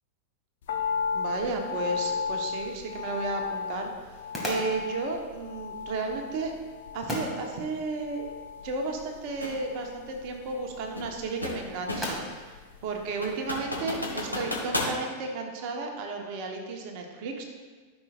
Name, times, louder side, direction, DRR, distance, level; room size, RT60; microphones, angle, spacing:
sound 1, 0.7-13.0 13.2-13.3, left 6 dB, 60° left, 0.8 m, -36 dB
voice 1, 1.1-6.5 6.9-8.3 8.6-17.4, right 3 dB, 45° right, 2 dB, 1.1 m, -33 dB
sound 2, 2.2-13.9, equal, ahead, 2.2 m, -42 dB
sound 3, 9.4-9.6 11.0-12.3 12.7-12.8 13.2-15.0, left 2 dB, 85° left, 1.4 m, -32 dB
14.0 x 6.2 x 2.5 m, 1.4 s
figure-of-eight pair, 90°, 0 cm